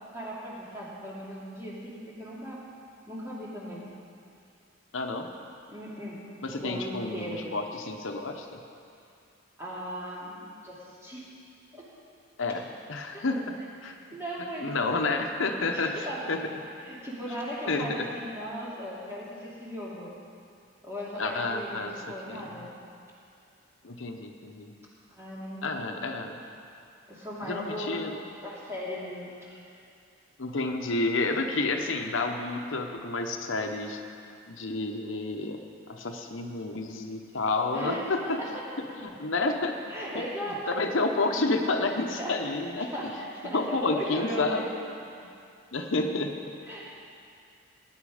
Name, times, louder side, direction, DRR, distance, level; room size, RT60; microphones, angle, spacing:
voice 1, 0.1-2.6 3.1-3.9 5.7-7.5 9.6-11.3 11.7-11.8 13.1-13.2 13.9-14.8 15.4-16.2 16.8-20.2 20.8-22.7 25.1-26.0 27.1-29.7 37.7-38.6 39.9-40.7 42.2-42.5 42.8-44.7 46.6-46.8, equal, 15° right, -7 dB, 2.8 m, -38 dB
voice 2, 4.9-5.3 6.4-8.5 12.4-13.4 13.8-13.9 14.6-16.4 17.7-18.0 21.2-21.9 22.3-22.4 23.8-24.7 25.6-26.4 27.5-28.1 30.4-34.0 34.5-35.6 35.9-38.4 39.0-39.8 40.1-40.2 40.7-42.9 43.5-44.6 45.7-46.4, left 3 dB, 80° left, 4 dB, 0.9 m, -30 dB
17.5 x 9.8 x 5.0 m, 2.5 s
head